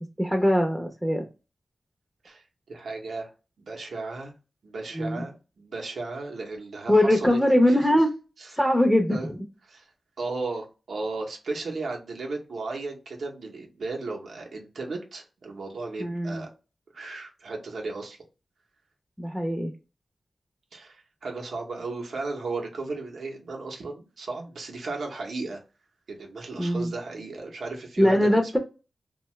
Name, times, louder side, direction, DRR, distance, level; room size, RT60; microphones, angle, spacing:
voice 1, 0.2-1.2 4.9-5.3 6.9-8.1 8.6-9.4 16.0-16.5 19.2-19.7 26.6-26.9 28.0-28.6, left 1 dB, ahead, 3 dB, 0.6 m, -22 dB
voice 2, 2.2-3.3 3.6-4.3 4.6-7.4 7.7-7.9 8.4-8.5 9.1-9.3 9.6-9.9 10.2-16.5 16.9-18.2 20.7-25.6 26.1-28.6, right 3 dB, 85° right, 1 dB, 0.7 m, -35 dB
2.6 x 2.3 x 3.0 m, 0.31 s
cardioid pair, 60°, 0 cm